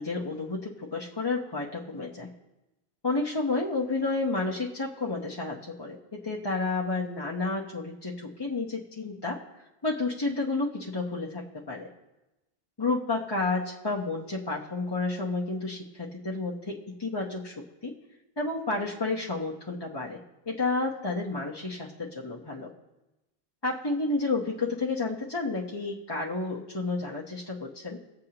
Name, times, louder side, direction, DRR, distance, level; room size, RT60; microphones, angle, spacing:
voice 1, 0.0-2.3 3.0-9.4 9.8-11.9 12.8-17.5 17.8-18.0 18.4-20.2 20.5-22.7 23.6-28.0, left 3 dB, 25° left, -4 dB, 0.9 m, -31 dB
20.0 x 7.9 x 2.9 m, 0.99 s
omnidirectional pair, 1.1 m